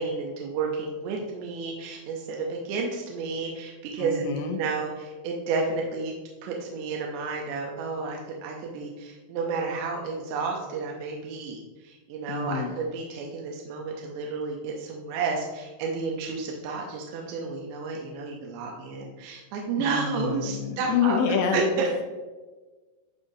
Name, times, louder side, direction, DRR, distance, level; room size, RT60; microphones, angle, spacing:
voice 1, 0.0-4.3 4.5-6.1 6.4-21.2 21.5-22.0, right 4 dB, 90° right, 0 dB, 2.9 m, -31 dB
voice 2, 4.0-4.6 12.3-12.7 19.8-21.6, left 6 dB, 80° left, 3 dB, 2.5 m, -27 dB
11.0 x 3.8 x 2.6 m, 1.3 s
omnidirectional pair, 4.8 m